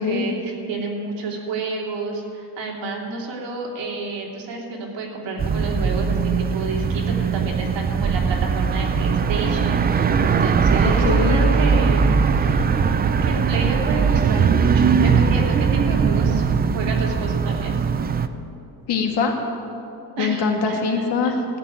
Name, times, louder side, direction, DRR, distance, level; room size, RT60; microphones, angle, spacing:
voice 1, 0.0-17.7 20.2-20.8, right 3 dB, 85° right, -1 dB, 3.1 m, -30 dB
sound 1, 5.4-18.3, right 5 dB, 25° right, 0.4 m, -20 dB
voice 2, 10.8-11.4 18.9-19.4 20.2-21.4, left 5 dB, 60° left, 3 dB, 2.1 m, -22 dB
14.5 x 8.9 x 9.3 m, 2.8 s
cardioid pair, 155°, 44 cm